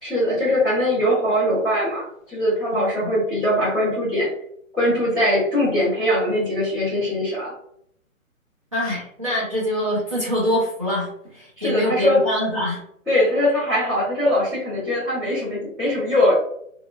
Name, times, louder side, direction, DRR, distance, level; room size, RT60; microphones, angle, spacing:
voice 1, 0.0-4.3 4.7-7.5 11.6-12.2 13.1-16.3, left 1 dB, ahead, -17 dB, 0.9 m, -21 dB
voice 2, 2.7-3.1 8.7-12.8, equal, 25° right, -8 dB, 0.4 m, -24 dB
2.8 x 2.3 x 2.2 m, 0.71 s
hypercardioid pair, 155°, 40 cm